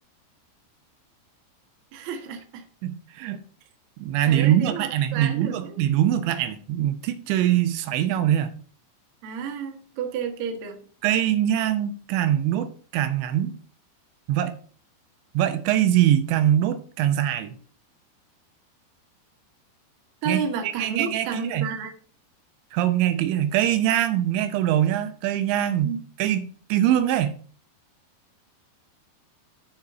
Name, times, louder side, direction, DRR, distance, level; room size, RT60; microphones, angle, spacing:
voice 1, 1.9-2.6 4.3-5.8 9.2-10.8 20.2-21.9 25.8-26.0, right 6 dB, 60° right, 1.9 m, -31 dB
voice 2, 2.8-3.4 4.0-8.5 11.0-13.5 14.3-14.6 15.3-17.6 20.3-21.7 22.7-25.9 26.2-27.3, right 11 dB, 80° right, 3.0 m, -23 dB
7.2 x 6.4 x 5.8 m
omnidirectional pair, 5.2 m